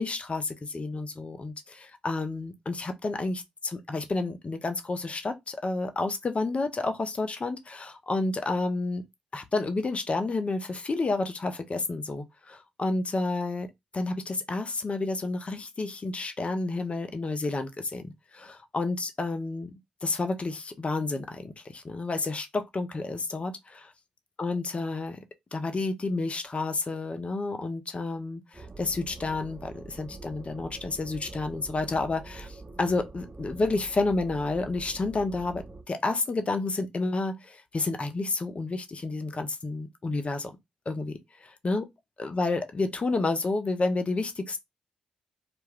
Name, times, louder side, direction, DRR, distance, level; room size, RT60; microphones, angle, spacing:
voice 1, 0.0-9.0 9.3-13.7 13.9-23.9 24.4-25.2 25.5-40.5 40.9-41.8 42.2-44.6, left 3 dB, 35° left, 0.7 m, -30 dB
sound 1, 28.5-35.8, right 3 dB, 30° right, 0.7 m, -45 dB
2.4 x 2.2 x 3.4 m
hypercardioid pair, 40°, 3 cm